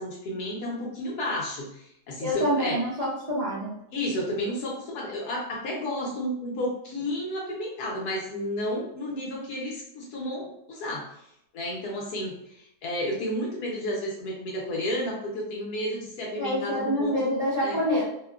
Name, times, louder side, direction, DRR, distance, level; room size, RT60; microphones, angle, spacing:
voice 1, 0.0-2.8 3.9-11.1 11.5-17.2 17.6-17.8, left 1 dB, 85° left, -2 dB, 1.3 m, -32 dB
voice 2, 2.2-3.7 16.4-18.0, equal, 40° right, -9 dB, 0.5 m, -26 dB
3.1 x 2.1 x 2.3 m, 0.77 s
omnidirectional pair, 1.6 m